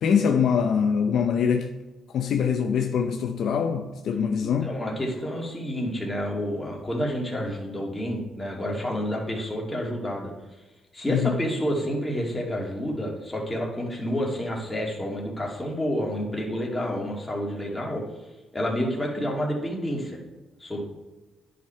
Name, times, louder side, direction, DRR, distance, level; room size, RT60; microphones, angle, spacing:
voice 1, 0.0-1.7 2.1-4.7 11.1-11.5, left 7 dB, 70° left, 0.7 m, -24 dB
voice 2, 4.6-10.3 10.9-18.0 18.5-20.2 20.6-20.8, equal, 15° left, 2.4 m, -29 dB
10.5 x 5.2 x 4.5 m
cardioid pair, 90°, 0 cm